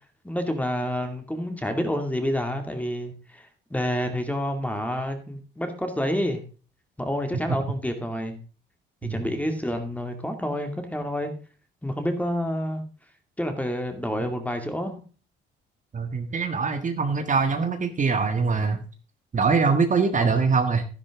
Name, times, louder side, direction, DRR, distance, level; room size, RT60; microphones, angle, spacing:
voice 1, 0.2-6.4 7.0-8.4 9.0-11.3 11.8-12.8 13.4-15.0 20.2-20.4, equal, 5° left, 6 dB, 2.3 m, -28 dB
voice 2, 15.9-18.8 19.3-20.8, right 4 dB, 40° right, 6 dB, 1.6 m, -23 dB
11.5 x 10.5 x 3.6 m, 0.37 s
cardioid pair, 90°, 20 cm